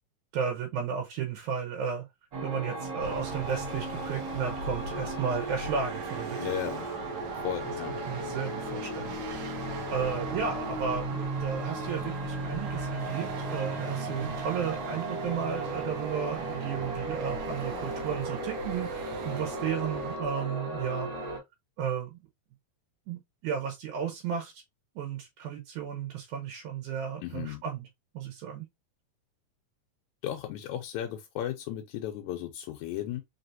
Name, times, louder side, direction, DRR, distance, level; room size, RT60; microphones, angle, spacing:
voice 1, 0.3-2.1 2.4-6.4 7.9-9.2 9.9-21.4 21.8-22.2 23.1-24.6 25.0-27.8 28.1-28.7, right 7 dB, 85° right, 2.3 m, -33 dB
sound 1, 2.3-21.4, right 1 dB, 40° right, 1.7 m, -36 dB
sound 2, 3.0-20.2, right 4 dB, 70° right, 1.4 m, -42 dB
voice 2, 6.4-6.9 7.3-8.0 27.2-27.6 30.2-33.2, left 11 dB, 85° left, 2.0 m, -35 dB
4.7 x 3.3 x 2.6 m
omnidirectional pair, 3.4 m